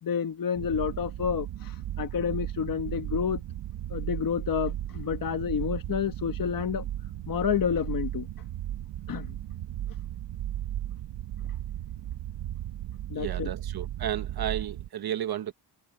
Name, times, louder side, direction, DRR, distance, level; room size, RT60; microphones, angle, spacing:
voice 1, 0.0-3.4 3.9-6.8 7.3-8.3 9.1-9.3 13.1-13.5, left 7 dB, 50° left, 1.6 m, -29 dB
sound 1, 0.5-14.9, right 12 dB, 80° right, 1.2 m, -35 dB
voice 2, 13.1-15.5, right 10 dB, 55° right, 1.1 m, -33 dB
wide cardioid pair, 160°, 44 cm